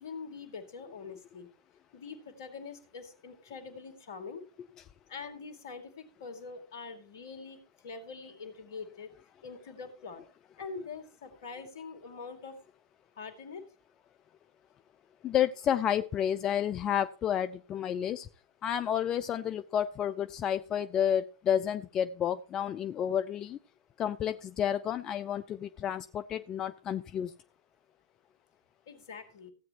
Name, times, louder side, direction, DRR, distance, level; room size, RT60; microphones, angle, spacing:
voice 1, 0.0-1.5 1.9-4.4 5.1-9.1 9.4-10.2 10.6-12.6 13.1-13.6 28.9-29.5, left 5 dB, 65° left, 9 dB, 2.3 m, -44 dB
voice 2, 15.2-18.3 18.6-23.6 24.0-27.3, left 9 dB, 30° left, 12 dB, 0.5 m, -30 dB
15.0 x 8.9 x 2.9 m, 0.36 s
figure-of-eight pair, 105°, 2 cm